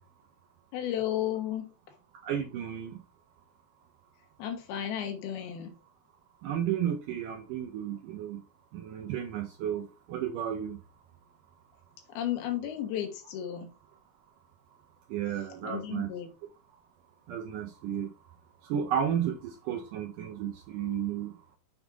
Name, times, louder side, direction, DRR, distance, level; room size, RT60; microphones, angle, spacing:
voice 1, 0.7-1.7 4.4-5.7 12.1-13.7 15.6-16.3, left 11 dB, 80° left, 3.1 m, -33 dB
voice 2, 2.2-2.9 6.4-8.4 8.7-10.8 15.1-16.1 17.3-18.1 18.7-21.3, right 9 dB, 80° right, 2.0 m, -33 dB
7.0 x 5.4 x 3.5 m
omnidirectional pair, 4.4 m